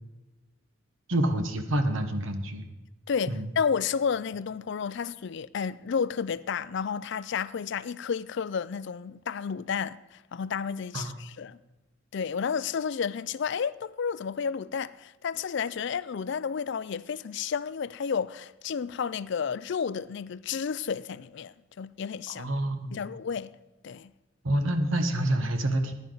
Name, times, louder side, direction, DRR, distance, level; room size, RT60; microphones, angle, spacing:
voice 1, 1.1-2.6 3.3-3.5 10.9-11.1 22.3-23.0 24.4-25.9, right 1 dB, 70° right, 1.2 m, -27 dB
voice 2, 3.1-11.6 12.1-22.5 22.9-23.6 23.8-24.1, left 6 dB, 60° left, 0.4 m, -31 dB
15.0 x 10.5 x 4.0 m
head